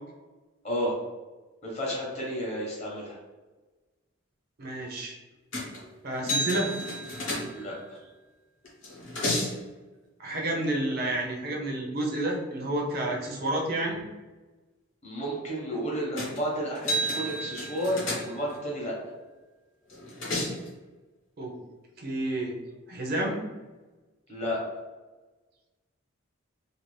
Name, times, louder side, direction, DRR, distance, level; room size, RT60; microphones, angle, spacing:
voice 1, 0.6-0.9 1.6-3.2 7.5-7.8 15.0-19.0 24.3-24.6, equal, 30° left, -4 dB, 0.8 m, -31 dB
voice 2, 4.6-5.2 6.0-6.7 10.2-14.0 21.4-21.5 22.0-22.6 22.9-23.4, right 1 dB, 45° right, -1 dB, 0.5 m, -30 dB
sound 1, 5.5-5.8 6.2-7.9 8.6-9.6 16.2-16.4 16.7-18.6 19.9-20.7, equal, 60° left, 0.8 m, -31 dB
2.5 x 2.4 x 3.1 m, 1.2 s
head